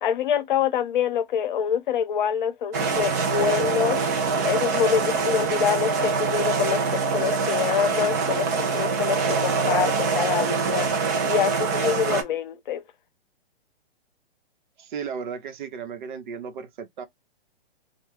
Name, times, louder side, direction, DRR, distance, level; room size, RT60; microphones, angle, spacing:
voice 1, 0.0-4.0 4.4-8.5 8.7-10.9 11.2-12.8, left 8 dB, 50° left, 0.8 m, -26 dB
sound 1, 2.7-12.2, right 4 dB, 20° right, 0.3 m, -24 dB
voice 2, 14.8-17.1, right 6 dB, 50° right, 0.7 m, -35 dB
2.3 x 2.1 x 3.2 m
hypercardioid pair, 145°, 30 cm